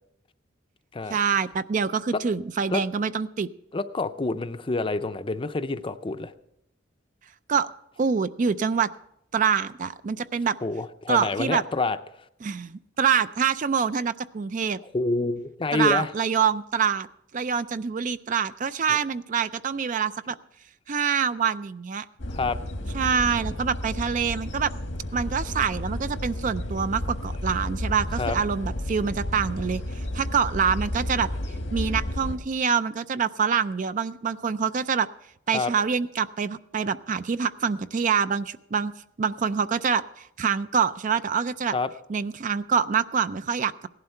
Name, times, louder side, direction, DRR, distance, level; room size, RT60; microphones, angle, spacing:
voice 1, 1.1-3.5 7.5-7.7 8.0-8.9 9.3-10.6 11.1-11.6 12.4-12.7 13.0-14.8 15.7-17.1 17.3-20.4 20.9-22.0 22.9-24.7 25.1-31.3 31.7-35.1 35.5-38.9 39.2-41.7 42.1-43.7, right 6 dB, 45° right, 13 dB, 0.4 m, -25 dB
voice 2, 3.7-6.3 10.6-12.0 14.8-16.1 22.3-22.6 28.2-28.4 35.5-35.7 41.7-41.9, left 3 dB, 30° left, 11 dB, 0.5 m, -27 dB
sound 1, 22.2-32.4, left 1 dB, 90° left, 1.6 m, -32 dB
17.0 x 11.5 x 4.4 m, 0.76 s
head